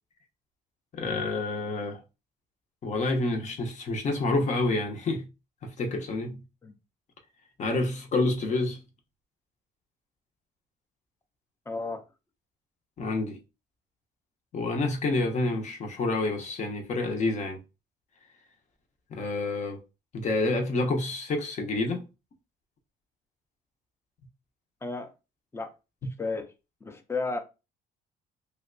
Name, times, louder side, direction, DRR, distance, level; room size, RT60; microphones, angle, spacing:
voice 1, 0.9-2.0 2.8-5.3 5.6-6.4 7.6-8.8 13.0-13.4 14.5-17.6 19.1-19.8 20.1-22.0 26.0-26.1, left 2 dB, 45° left, 0.8 m, -28 dB
voice 2, 11.7-12.0 24.8-25.1 25.5-25.7 26.2-26.5 26.8-27.4, left 3 dB, 15° left, 0.6 m, -32 dB
3.3 x 2.8 x 2.5 m
cardioid pair, 110°, 17 cm